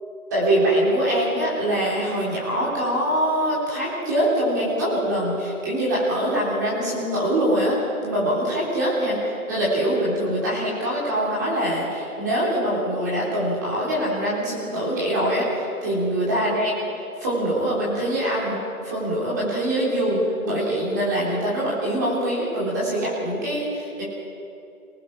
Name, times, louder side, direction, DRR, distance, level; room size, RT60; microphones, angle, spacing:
voice 1, 0.3-7.8 8.0-16.9 17.2-18.6 18.8-24.0, right 1 dB, 10° right, -7 dB, 3.5 m, -23 dB
30.0 x 19.0 x 6.0 m, 2.6 s
figure-of-eight pair, 175°, 44 cm